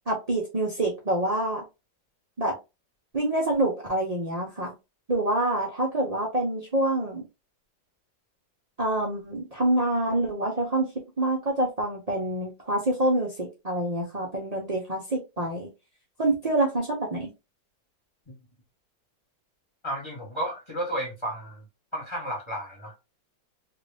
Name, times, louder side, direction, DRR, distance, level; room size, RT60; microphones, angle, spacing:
voice 1, 0.1-1.6 2.4-2.5 3.1-4.7 5.1-7.2 8.8-10.9 11.2-15.7 16.2-17.3, right 1 dB, 55° right, 0.4 m, -26 dB
voice 2, 19.8-21.6 21.9-23.0, right 1 dB, 20° left, 1.1 m, -32 dB
2.9 x 2.6 x 3.3 m
omnidirectional pair, 1.9 m